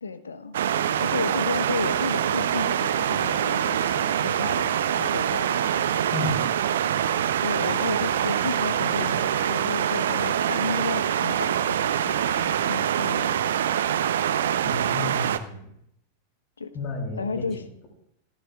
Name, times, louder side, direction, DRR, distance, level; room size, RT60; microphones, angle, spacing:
voice 1, 0.0-0.6 1.0-5.6 7.4-13.5 16.6-16.7 17.2-17.6, left 4 dB, 75° left, 10 dB, 1.1 m, -33 dB
sound 1, 0.5-15.4, right 9 dB, 60° right, 0.8 m, -24 dB
voice 2, 14.6-15.7 16.7-17.9, left 2 dB, 35° left, 1 dB, 6.8 m, -32 dB
27.5 x 14.5 x 2.5 m, 0.74 s
figure-of-eight pair, 90°, 0 cm